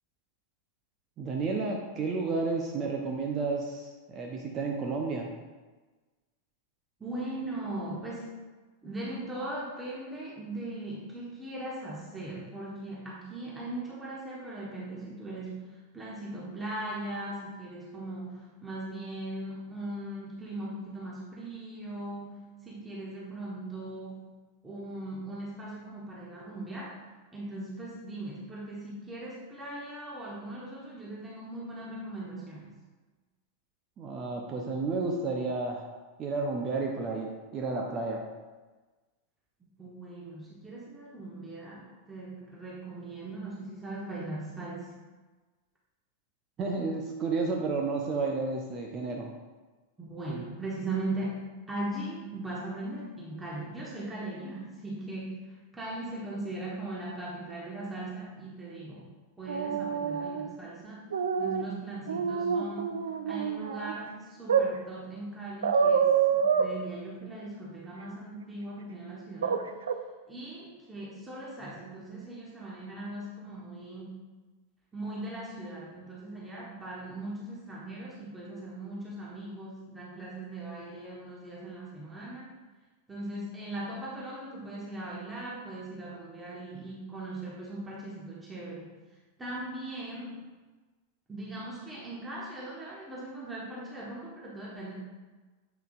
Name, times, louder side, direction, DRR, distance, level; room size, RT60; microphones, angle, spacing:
voice 1, 1.2-5.3 34.0-35.8 36.2-38.2 46.6-49.3, right 3 dB, 30° right, 1 dB, 0.8 m, -31 dB
voice 2, 7.0-8.3 8.8-24.3 24.6-27.0 27.3-32.7 39.8-44.9 50.0-59.1 59.4-63.0 63.3-69.6 70.3-74.2 74.9-82.5 83.1-88.9 89.4-90.4 91.3-94.9, right 2 dB, 15° right, -6 dB, 1.4 m, -39 dB
sound 1, 59.5-60.5 61.1-61.6 62.1-63.9 64.5-64.7 65.6-66.7 69.4-69.6 69.9-70.0, right 6 dB, 65° right, 0.4 m, -27 dB
7.9 x 6.6 x 2.5 m, 1.3 s
figure-of-eight pair, 90°, 0 cm